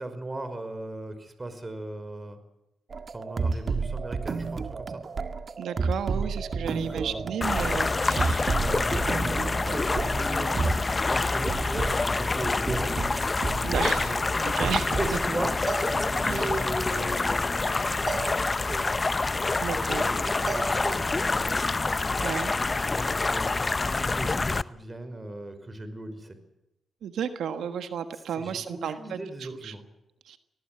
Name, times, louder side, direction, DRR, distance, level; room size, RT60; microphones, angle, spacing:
voice 1, 0.0-2.4 3.1-5.0 6.5-7.3 8.6-13.0 14.0-14.7 15.0-19.1 19.9-21.5 23.2-23.5 24.1-26.4 28.3-29.8, right 2 dB, 30° right, 10 dB, 5.4 m, -37 dB
sound 1, 2.9-10.9 11.5-11.9 12.7-14.1 14.5-15.3 15.7-16.5 18.1-18.9 20.5-21.3, right 4 dB, 50° right, 1.8 m, -31 dB
voice 2, 5.6-8.6 13.6-14.1 14.4-14.9 16.2-16.5 19.6-20.1 22.2-22.5 27.0-29.7 30.2-30.4, right 8 dB, 80° right, 9 dB, 1.4 m, -33 dB
sound 2, 7.4-24.6, left 3 dB, 35° left, 0.8 m, -27 dB
23.0 x 19.0 x 7.7 m, 0.90 s
supercardioid pair, 55°, 0 cm